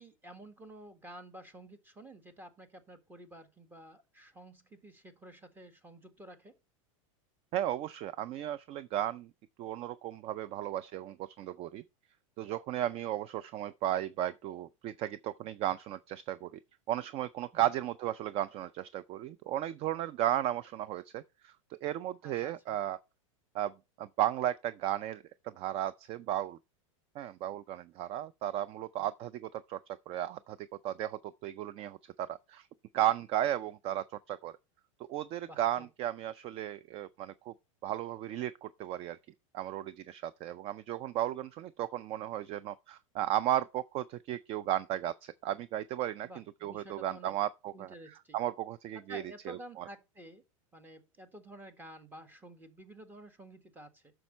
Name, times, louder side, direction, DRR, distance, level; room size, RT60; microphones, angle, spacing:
voice 1, 0.0-6.6 17.5-17.7 22.2-22.8 35.4-35.9 46.2-47.4 47.7-48.4 49.1-50.4 50.7-54.1, right 1 dB, 10° right, 1.4 m, -51 dB
voice 2, 7.5-9.3 9.6-11.8 12.4-16.6 16.9-23.0 23.5-23.7 24.0-26.6 27.2-32.7 32.9-34.5 35.1-37.5 37.8-39.2 39.5-47.9 48.3-49.9, right 12 dB, 35° right, 0.4 m, -35 dB
9.0 x 6.2 x 4.3 m
supercardioid pair, 125°, 17 cm